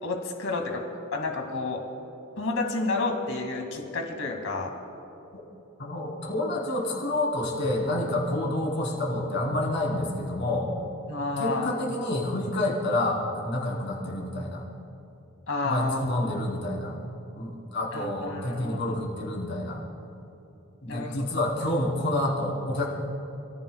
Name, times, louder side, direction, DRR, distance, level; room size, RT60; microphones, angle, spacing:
voice 1, 0.0-0.8 1.1-1.8 2.4-4.7 11.1-11.7 15.5-16.4 17.9-18.8 20.9-21.3, left 3 dB, 75° left, 2 dB, 2.4 m, -30 dB
voice 2, 5.8-10.7 11.4-14.6 15.6-16.9 17.4-19.8 20.8-22.9, left 1 dB, 55° left, -3 dB, 3.9 m, -28 dB
29.0 x 15.5 x 2.4 m, 2.9 s
head